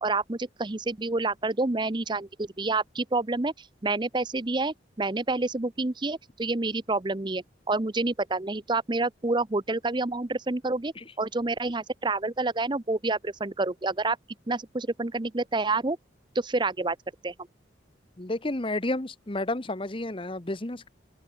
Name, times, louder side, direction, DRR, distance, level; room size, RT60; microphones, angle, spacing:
voice 1, 0.0-14.2 14.5-16.0 16.3-17.0 17.2-17.3, right 3 dB, 25° right, 0.7 m, -28 dB
voice 2, 18.2-20.9, left 2 dB, 30° left, 1.1 m, -31 dB
open air
head